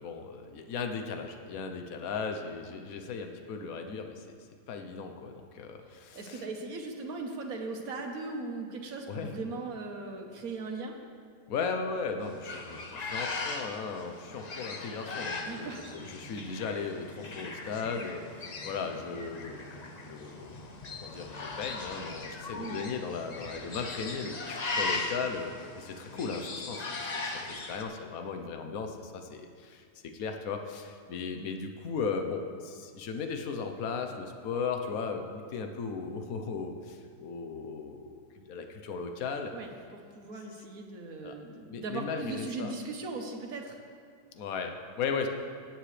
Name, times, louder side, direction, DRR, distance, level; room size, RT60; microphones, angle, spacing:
voice 1, 0.0-6.5 9.1-9.4 11.5-20.5 21.0-26.9 27.1-39.5 41.2-41.4 41.7-42.7 44.3-45.3, left 5 dB, 60° left, 5 dB, 1.2 m, -37 dB
voice 2, 6.1-10.9 15.4-16.0 22.5-22.8 39.5-43.8, right 3 dB, 60° right, 2 dB, 1.5 m, -38 dB
sound 1, 12.2-27.8, left 3 dB, 45° left, 0.5 m, -39 dB
17.0 x 9.0 x 3.3 m, 2.1 s
omnidirectional pair, 1.8 m